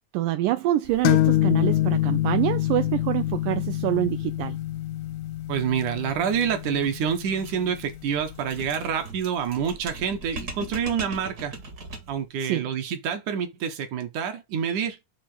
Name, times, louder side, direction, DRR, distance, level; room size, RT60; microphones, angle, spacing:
voice 1, 0.1-4.6 12.4-12.7, right 14 dB, 85° right, 1.8 m, -26 dB
sound 1, 1.0-8.5, left 14 dB, 80° left, 1.8 m, -26 dB
voice 2, 5.5-11.5 12.1-15.0, right 7 dB, 65° right, 2.4 m, -27 dB
sound 2, 6.6-12.3, right 2 dB, 45° right, 1.2 m, -40 dB
6.8 x 3.4 x 6.2 m
omnidirectional pair, 4.1 m